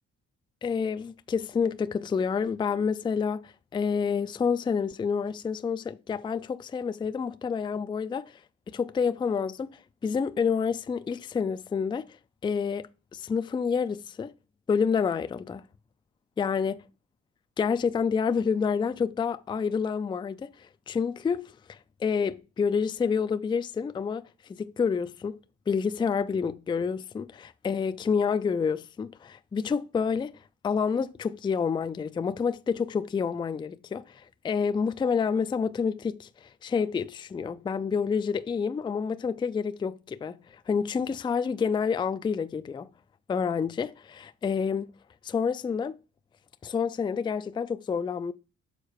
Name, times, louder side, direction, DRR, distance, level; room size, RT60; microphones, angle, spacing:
voice 1, 0.6-8.4 8.7-9.7 10.0-12.1 12.4-14.3 14.7-15.6 16.4-16.8 17.6-25.4 25.7-30.3 30.6-40.4 40.7-42.9 43.3-44.9 45.2-46.0 46.6-48.3, left 6 dB, 15° left, 0.3 m, -28 dB
6.6 x 4.0 x 4.7 m
cardioid pair, 90°, 30 cm